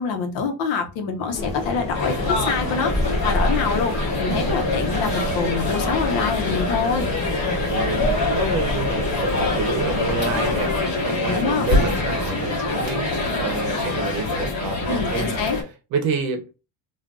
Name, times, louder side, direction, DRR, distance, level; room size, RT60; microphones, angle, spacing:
voice 1, 0.0-3.9 4.2-7.1 11.3-11.7 14.9-15.6, left 5 dB, 70° left, 1.0 m, -25 dB
sound 1, 1.3-10.9, left 2 dB, 15° left, 0.4 m, -29 dB
sound 2, 1.9-15.6, left 2 dB, 40° left, 1.2 m, -25 dB
sound 3, 4.0-10.6, right 4 dB, 25° right, 1.2 m, -35 dB
voice 2, 4.4-4.7 7.4-15.2 15.9-16.5, right 4 dB, 50° right, 0.8 m, -28 dB
3.8 x 2.5 x 2.3 m
cardioid pair, 170°, 45 cm